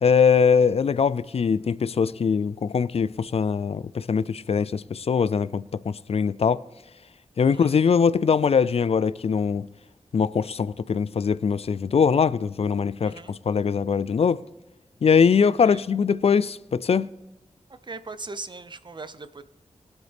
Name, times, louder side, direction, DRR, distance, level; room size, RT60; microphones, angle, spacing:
voice 1, 0.0-6.6 7.4-9.7 10.1-14.4 15.0-17.1, left 6 dB, 60° left, 0.4 m, -22 dB
voice 2, 7.5-7.8 13.0-13.3 15.4-15.8 17.7-19.4, right 3 dB, 40° right, 0.7 m, -40 dB
22.0 x 8.0 x 3.5 m
wide cardioid pair, 85°, 12 cm